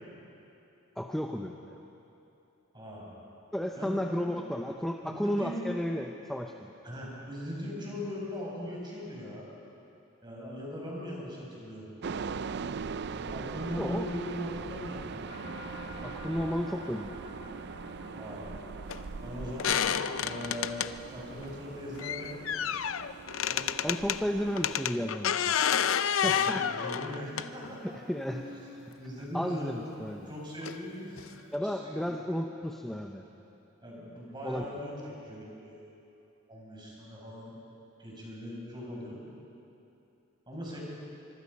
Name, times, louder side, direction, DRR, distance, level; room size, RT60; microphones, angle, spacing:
voice 1, 1.0-1.6 3.5-6.5 13.8-14.2 16.0-17.2 23.8-25.6 26.2-26.6 27.8-28.5 29.3-30.3 31.5-33.2 34.4-34.7, equal, ahead, 2 dB, 0.7 m, -33 dB
voice 2, 2.7-3.1 3.8-4.4 5.0-5.6 6.8-9.5 10.2-11.9 13.1-15.2 18.1-18.5 19.2-19.8 20.2-20.8 21.1-22.4 23.5-23.6 26.2-27.8 28.3-28.4 29.0-32.2 33.8-35.8 36.5-37.6 38.0-39.2 40.5-40.8, equal, 20° right, -3 dB, 6.0 m, -40 dB
sound 1, 12.0-24.7, right 5 dB, 55° right, 0.5 m, -41 dB
sound 2, 15.3-30.5 31.0-31.4, left 1 dB, 85° left, 3.1 m, -52 dB
sound 3, 18.9-19.0 19.6-20.9 22.0-24.2 24.6-27.8 28.9-29.0 30.6-30.8 31.2-31.3 31.6-31.7, left 8 dB, 70° left, 0.6 m, -29 dB
24.5 x 24.0 x 5.4 m, 2.9 s
head